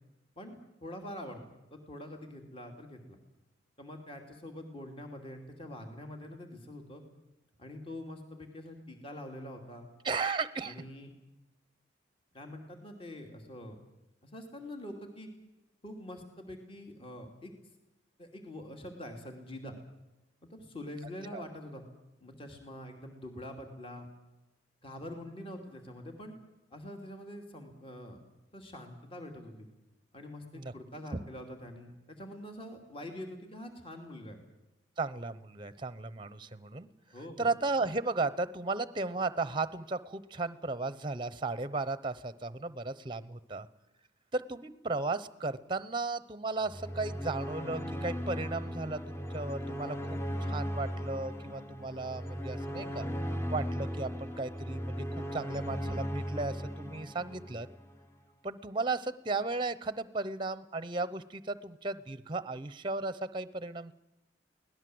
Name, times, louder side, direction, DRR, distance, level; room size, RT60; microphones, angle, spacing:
voice 1, 0.4-1.4 1.7-3.2 3.8-7.0 7.6-9.9 10.6-11.1 12.3-13.8 14.2-15.3 15.8-17.5 18.2-19.7 20.4-21.8 22.2-24.1 24.8-26.4 26.7-28.2 28.5-29.7 30.1-34.4 37.1-37.5, left 1 dB, 30° left, 4 dB, 2.7 m, -45 dB
voice 2, 10.0-10.8 21.3-21.4 30.5-30.7 31.1-31.2 35.0-36.9 37.4-43.7 44.3-53.1 53.5-57.7 58.4-63.9, right 3 dB, 25° right, 15 dB, 0.9 m, -35 dB
sound 1, 46.6-58.0, equal, 15° left, 1.2 m, -37 dB
23.5 x 18.0 x 7.9 m, 0.97 s
head